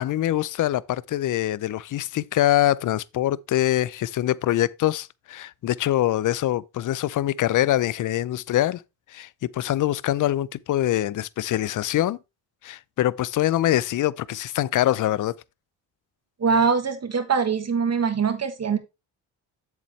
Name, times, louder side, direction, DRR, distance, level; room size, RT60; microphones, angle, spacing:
voice 1, 0.0-8.8 9.1-12.2 12.6-15.3, left 13 dB, 45° left, 0.5 m, -24 dB
voice 2, 16.4-18.8, right 5 dB, 35° right, 1.7 m, -23 dB
7.5 x 7.3 x 3.2 m
cardioid pair, 80°, 46 cm